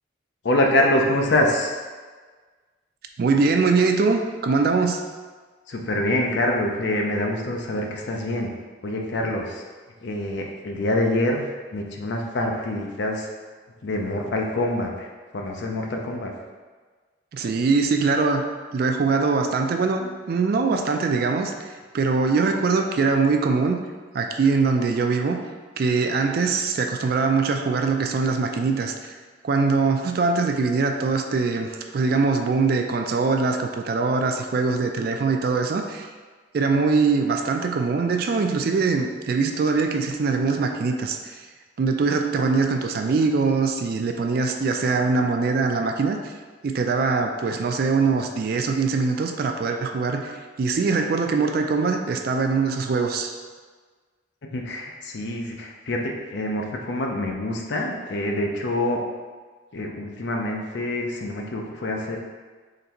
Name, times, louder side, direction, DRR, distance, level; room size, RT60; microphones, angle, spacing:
voice 1, 0.4-1.8 5.7-8.5 8.8-9.6 10.0-11.5 11.7-13.3 13.8-15.1 15.3-16.3 54.5-59.0 59.7-62.2, left 1 dB, 60° left, 1 dB, 0.5 m, -25 dB
voice 2, 3.2-5.0 17.3-18.4 18.7-23.8 24.1-25.4 25.8-29.2 29.4-36.1 36.5-41.5 41.8-46.3 46.6-53.4, right 4 dB, 50° right, 4 dB, 0.3 m, -22 dB
3.9 x 3.2 x 2.9 m, 1.4 s
head